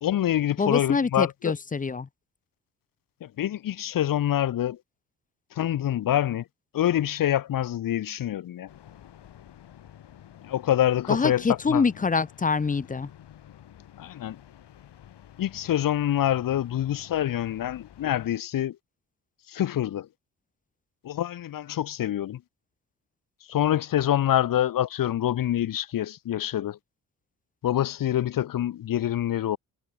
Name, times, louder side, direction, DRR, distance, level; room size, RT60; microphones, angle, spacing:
voice 1, 0.0-1.5 3.2-4.8 5.5-6.4 6.7-8.7 10.5-11.8 14.0-14.4 15.4-18.8 19.5-20.1 21.0-22.4 23.5-26.8 27.6-29.6, left 12 dB, 50° left, 0.8 m, -26 dB
voice 2, 0.6-2.1 11.1-13.1, left 5 dB, 20° left, 0.6 m, -25 dB
sound 1, 8.7-18.3, left 10 dB, 65° left, 7.2 m, -50 dB
hypercardioid pair, 45°, 44 cm